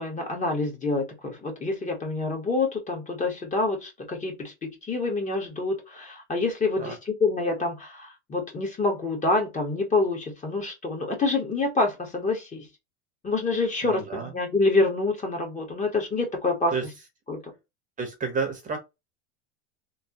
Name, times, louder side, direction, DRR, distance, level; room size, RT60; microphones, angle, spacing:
voice 1, 0.0-12.7 13.2-16.7 17.3-17.5, left 3 dB, 20° left, 1.1 m, -27 dB
voice 2, 13.8-14.3 16.7-16.9 18.0-18.8, right 5 dB, 25° right, 0.8 m, -30 dB
3.2 x 2.1 x 2.7 m
supercardioid pair, 110°, 34 cm